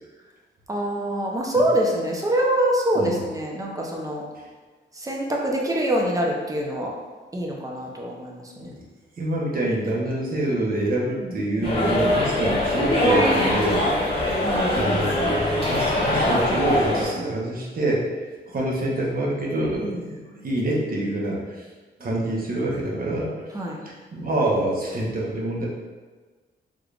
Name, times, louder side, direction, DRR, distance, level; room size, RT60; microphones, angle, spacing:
voice 1, 0.7-4.2 4.9-6.9 7.3-8.7 11.2-12.0 14.4-15.8 19.8-20.0 23.5-23.8, right 1 dB, 20° right, -1 dB, 0.6 m, -26 dB
voice 2, 9.2-14.2 14.7-21.7 22.0-23.3 23.8-25.7, right 1 dB, 50° right, -3 dB, 0.9 m, -26 dB
sound 1, 11.6-17.0, left 1 dB, 30° left, 1.4 m, -22 dB
3.6 x 3.3 x 2.4 m, 1.4 s
cardioid pair, 95°, 19 cm